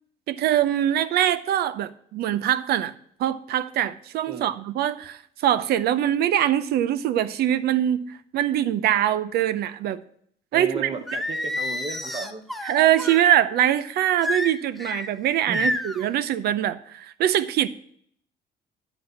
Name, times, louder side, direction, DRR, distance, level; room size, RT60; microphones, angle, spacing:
voice 1, 0.3-2.9 3.2-10.0 10.5-10.9 12.6-17.7, right 11 dB, 70° right, 15 dB, 0.6 m, -23 dB
voice 2, 10.5-12.4 15.5-15.7, right 4 dB, 30° right, 5 dB, 0.9 m, -35 dB
Singing, 11.1-13.2 14.2-15.1 15.5-16.0, left 1 dB, ahead, 0.7 m, -29 dB
11.0 x 4.1 x 6.9 m, 0.65 s
cardioid pair, 110°, 17 cm